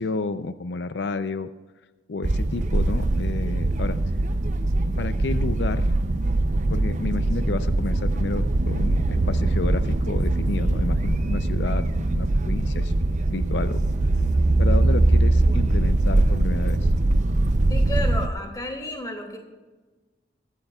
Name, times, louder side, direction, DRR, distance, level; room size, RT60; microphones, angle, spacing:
voice 1, 0.0-1.5 2.1-4.0 5.0-5.9 6.7-12.9 13.3-13.8 14.6-16.9, left 3 dB, 85° left, 11 dB, 0.5 m, -30 dB
sound 1, 2.2-18.3, right 2 dB, 45° right, 0.6 m, -22 dB
voice 2, 17.7-19.4, left 1 dB, 20° left, 2 dB, 2.5 m, -32 dB
22.0 x 13.0 x 2.4 m, 1.3 s
head